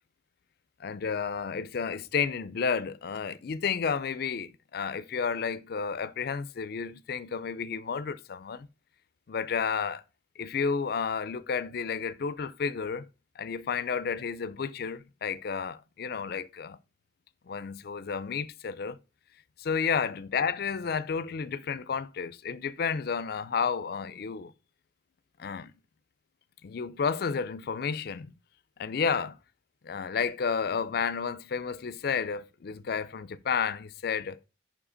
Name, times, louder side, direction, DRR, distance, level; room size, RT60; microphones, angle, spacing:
voice 1, 0.8-8.7 9.3-10.0 10.4-13.1 13.4-16.8 17.5-19.0 19.6-24.5 25.4-25.7 26.6-28.3 28.8-29.4 29.8-34.4, left 6 dB, 55° left, 0.4 m, -31 dB
5.6 x 4.9 x 5.0 m
head